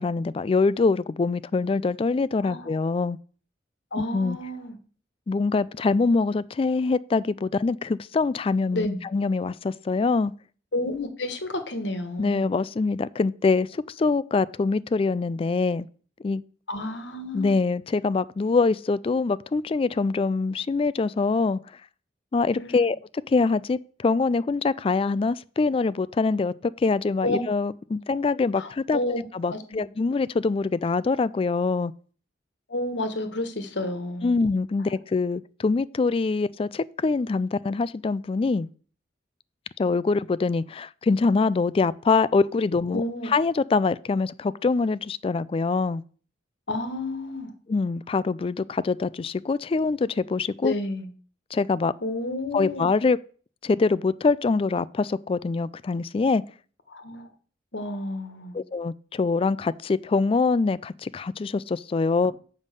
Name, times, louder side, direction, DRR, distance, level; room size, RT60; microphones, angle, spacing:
voice 1, 0.0-3.2 4.1-4.4 5.3-10.3 12.2-15.9 16.2-16.4 17.3-21.6 22.3-23.0 23.3-29.0 29.3-31.9 34.2-38.7 39.8-46.0 47.7-50.7 51.5-51.9 52.5-53.2 53.6-56.4 58.5-62.3, left 4 dB, 30° left, 0.3 m, -24 dB
voice 2, 2.4-2.7 3.9-4.7 8.7-9.0 10.7-12.5 16.7-17.5 22.5-22.9 27.2-27.4 28.6-29.2 29.5-29.9 32.7-34.4 42.9-43.3 46.7-47.5 50.6-51.1 52.0-52.9 56.9-57.3 57.7-58.5, left 2 dB, 80° left, 1.4 m, -30 dB
7.2 x 5.3 x 6.6 m
head